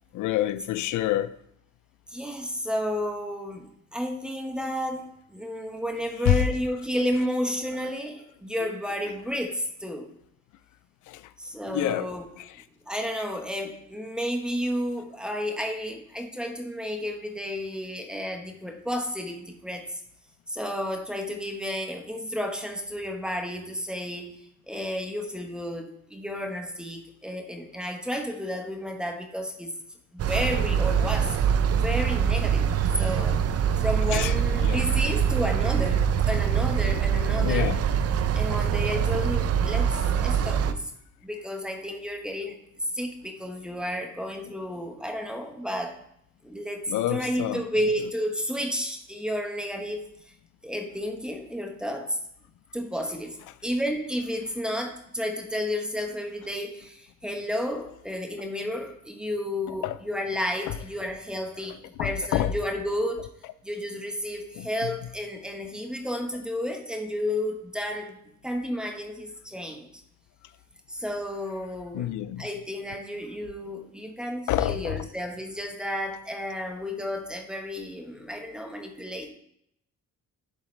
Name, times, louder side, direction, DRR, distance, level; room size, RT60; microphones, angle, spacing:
voice 1, 0.1-1.4 6.3-6.5 11.1-11.2 11.7-12.1 12.4-12.5 34.1-34.8 37.4-37.8 46.9-47.6 59.8-60.0 62.0-62.5 64.6-64.9 71.9-72.4 74.5-75.0, left 13 dB, 80° left, 0.5 m, -27 dB
voice 2, 2.1-10.1 11.4-12.3 12.9-19.9 20.5-29.7 30.1-31.4 31.7-32.7 32.9-33.4 33.8-37.7 38.3-40.9 41.2-42.6 42.9-46.0 46.4-50.1 50.6-52.2 52.7-63.3 63.6-68.2 68.4-69.9 70.9-72.1 72.4-79.3, equal, 5° right, 1.1 m, -32 dB
sound 1, 30.2-40.7, right 8 dB, 55° right, 0.5 m, -24 dB
11.0 x 4.0 x 3.2 m
cardioid pair, 90°, 30 cm